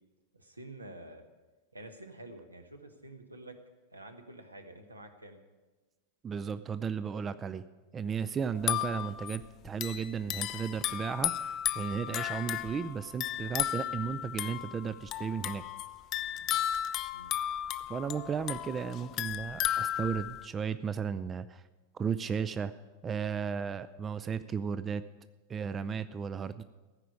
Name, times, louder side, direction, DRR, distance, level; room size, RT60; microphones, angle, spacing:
voice 1, 0.3-1.2 1.7-3.6 3.9-5.4 17.1-17.5 17.8-17.9, right 2 dB, 80° right, 6 dB, 1.1 m, -49 dB
voice 2, 6.2-7.6 7.9-15.6 17.9-21.6 21.9-22.7 23.0-25.0 25.5-26.6, right 6 dB, 20° right, 13 dB, 0.4 m, -34 dB
sound 1, 8.6-20.5, left 12 dB, 35° left, 0.5 m, -34 dB
15.0 x 5.0 x 9.5 m, 1.2 s
figure-of-eight pair, 90°, 0 cm